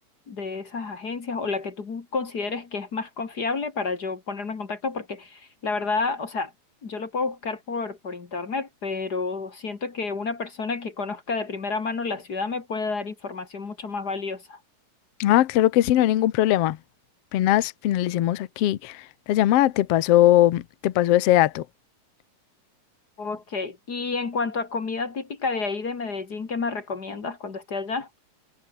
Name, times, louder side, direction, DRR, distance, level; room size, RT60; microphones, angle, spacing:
voice 1, 0.3-6.5 6.8-14.6 23.2-28.1, left 4 dB, 35° left, 2.0 m, -30 dB
voice 2, 15.2-16.8 17.3-19.0 19.3-21.6, left 14 dB, 65° left, 1.7 m, -20 dB
omnidirectional pair, 3.8 m